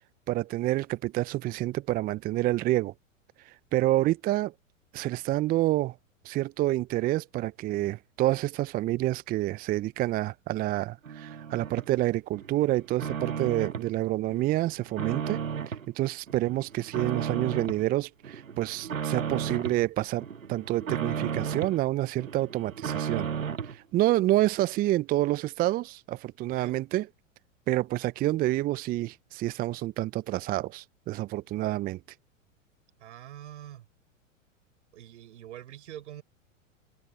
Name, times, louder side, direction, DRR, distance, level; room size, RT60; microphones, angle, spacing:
voice 1, 0.3-2.9 3.4-4.5 4.9-5.9 6.2-23.3 23.6-27.1 27.7-32.0, right 16 dB, 20° right, 0.6 m, -28 dB
sound 1, 11.1-11.9 12.3-13.9 14.3-15.9 16.3-17.8 18.2-19.8 20.2-21.8 22.2-23.8, right 7 dB, 75° right, 2.2 m, -34 dB
voice 2, 26.4-26.8 33.0-33.9 34.9-36.2, right 12 dB, 60° right, 6.5 m, -45 dB
figure-of-eight pair, 100°, 40 cm